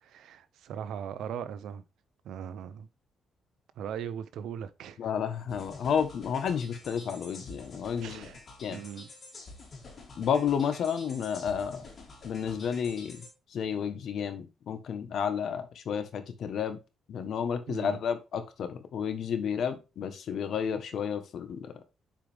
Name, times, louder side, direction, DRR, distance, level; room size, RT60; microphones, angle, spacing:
voice 1, 0.0-1.8 2.2-2.9 3.8-5.0 8.0-8.4 8.7-9.1 17.7-18.0, right 8 dB, 80° right, 0.7 m, -39 dB
voice 2, 5.0-8.3 8.6-8.8 10.2-11.9 12.2-13.2 13.5-16.8 17.1-21.7, left 7 dB, 65° left, 1.2 m, -31 dB
sound 1, 5.5-13.3, left 3 dB, 45° left, 2.9 m, -48 dB
7.5 x 4.9 x 3.5 m
cardioid pair, 105°, 0 cm